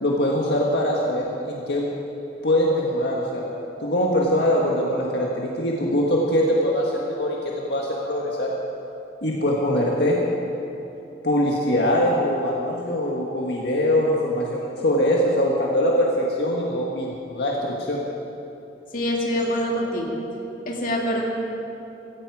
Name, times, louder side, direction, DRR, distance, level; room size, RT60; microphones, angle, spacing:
voice 1, 0.0-1.8 2.4-3.4 3.8-8.5 9.2-10.2 11.2-18.0, equal, 70° left, -3 dB, 1.7 m, -22 dB
voice 2, 18.9-20.2 20.7-21.2, equal, 50° left, -2 dB, 2.4 m, -25 dB
16.5 x 15.5 x 4.9 m, 2.9 s
head